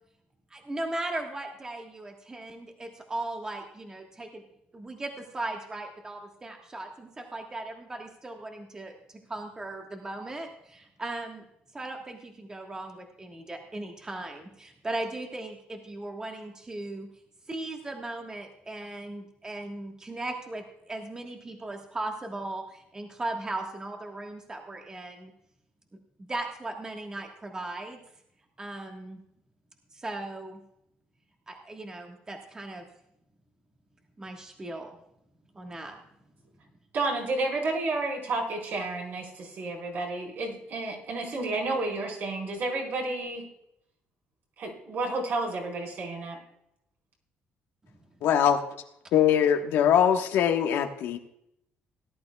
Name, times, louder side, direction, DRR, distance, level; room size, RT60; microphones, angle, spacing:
voice 1, 0.5-4.4 4.7-9.0 9.3-11.4 11.7-17.1 17.5-25.3 26.3-28.0 28.6-29.2 29.9-30.6 31.5-32.9 34.2-35.0 35.5-36.0, right 2 dB, 20° right, 2 dB, 1.5 m, -37 dB
voice 2, 36.9-43.4 44.6-46.4, right 2 dB, 60° right, 0 dB, 4.5 m, -31 dB
voice 3, 48.2-48.6 49.1-51.2, left 9 dB, 85° left, 4 dB, 1.3 m, -22 dB
18.5 x 11.5 x 2.3 m, 0.78 s
cardioid pair, 130°, 4 cm